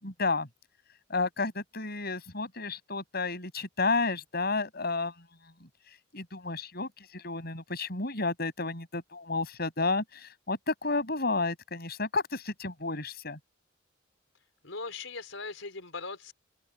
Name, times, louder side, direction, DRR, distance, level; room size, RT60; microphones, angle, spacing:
voice 1, 0.0-0.5 1.1-5.1 5.6-5.7 6.1-13.4, left 3 dB, 55° left, 6.2 m, -31 dB
voice 2, 14.6-16.3, left 3 dB, 80° left, 4.7 m, -39 dB
open air
head